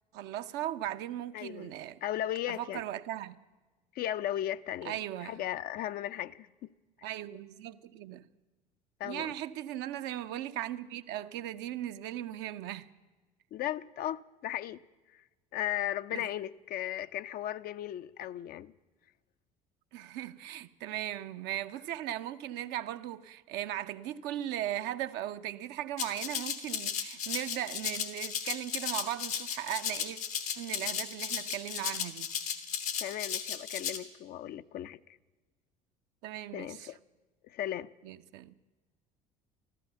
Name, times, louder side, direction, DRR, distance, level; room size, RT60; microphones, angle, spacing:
voice 1, 0.1-2.0 2.5-3.4 4.8-5.4 7.0-8.3 9.0-12.9 16.1-16.3 19.9-30.2 30.5-32.3 36.2-36.9 38.0-38.5, right 12 dB, 65° right, 0.7 m, -38 dB
voice 2, 1.3-1.7 2.0-2.8 3.9-6.5 9.0-9.3 13.5-14.8 15.1-15.2 15.5-18.7 33.0-35.0 36.5-37.0 37.4-37.9, left 12 dB, 50° left, 0.5 m, -36 dB
Rattle (instrument), 26.0-34.0, left 8 dB, 80° left, 1.4 m, -35 dB
13.5 x 13.5 x 6.9 m
hypercardioid pair, 65°, 19 cm